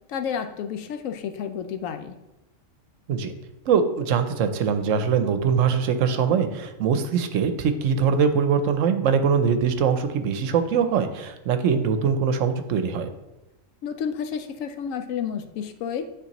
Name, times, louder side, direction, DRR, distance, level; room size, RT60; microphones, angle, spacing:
voice 1, 0.1-2.1 13.8-16.0, left 7 dB, 85° left, 8 dB, 1.0 m, -30 dB
voice 2, 3.7-13.1, right 6 dB, 80° right, 8 dB, 1.0 m, -22 dB
9.8 x 4.3 x 3.0 m, 0.99 s
omnidirectional pair, 1.3 m